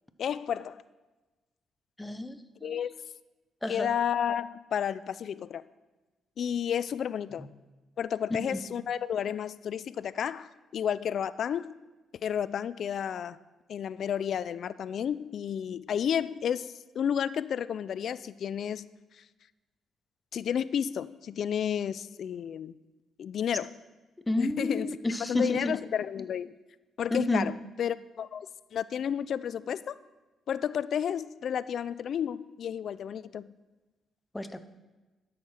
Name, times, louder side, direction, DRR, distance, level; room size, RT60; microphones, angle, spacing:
voice 1, 0.2-0.8 2.6-2.9 3.7-5.6 6.4-7.5 8.0-11.7 12.2-13.4 13.7-18.9 20.3-22.8 23.2-23.7 24.4-25.0 25.3-26.5 27.0-30.0 30.5-33.5, left 8 dB, 60° left, 16 dB, 0.3 m, -31 dB
voice 2, 2.0-2.8 3.6-3.9 8.4-8.6 24.3-25.7 27.1-27.5 34.3-34.6, left 1 dB, 15° left, 10 dB, 0.7 m, -31 dB
12.5 x 6.5 x 4.3 m, 1.2 s
cardioid pair, 90°, 0 cm